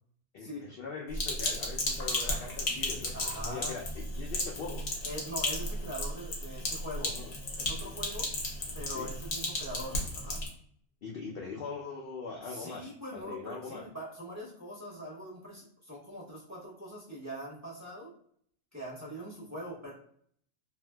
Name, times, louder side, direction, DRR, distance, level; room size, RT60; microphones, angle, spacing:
voice 1, 0.3-4.8 7.0-7.3 7.8-7.9 8.9-9.1 11.0-13.9, left 4 dB, 75° left, -2 dB, 0.5 m, -42 dB
Sink (filling or washing), 1.1-10.5, left 1 dB, 55° left, 0.9 m, -34 dB
voice 2, 3.1-3.7 5.0-7.2 7.6-8.3 8.7-10.4 12.4-18.1 18.7-19.9, equal, 15° right, -6 dB, 0.8 m, -42 dB
2.7 x 2.3 x 2.2 m, 0.63 s
omnidirectional pair, 1.5 m